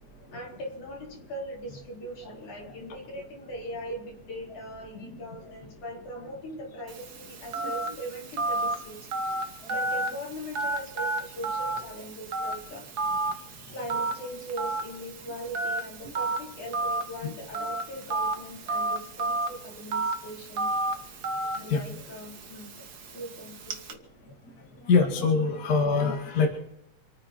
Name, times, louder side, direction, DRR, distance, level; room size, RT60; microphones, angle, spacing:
voice 1, 0.3-9.1 9.7-12.8 13.7-20.7 21.5-22.7 23.1-24.0, equal, 60° left, -2 dB, 5.6 m, -40 dB
Telephone, 6.9-23.9, right 2 dB, 70° right, 0.9 m, -32 dB
voice 2, 21.7-22.0 24.9-26.5, left 4 dB, 30° left, 1 dB, 2.5 m, -24 dB
28.0 x 9.7 x 4.5 m, 0.80 s
omnidirectional pair, 3.9 m